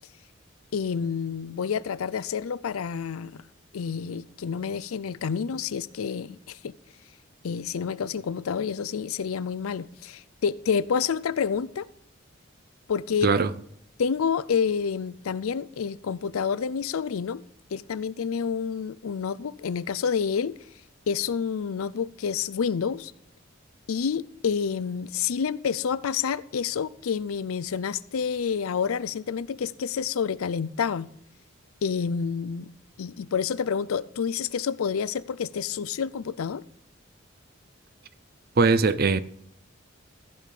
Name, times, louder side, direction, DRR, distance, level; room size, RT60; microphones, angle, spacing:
voice 1, 0.7-3.4 3.7-6.7 7.4-11.9 12.9-13.3 14.0-17.4 17.7-20.6 21.1-23.1 23.9-31.1 31.8-32.7 33.0-36.6, left 6 dB, 90° left, 0.5 m, -28 dB
voice 2, 38.6-39.2, right 4 dB, 45° right, 0.5 m, -20 dB
15.0 x 5.5 x 6.6 m
head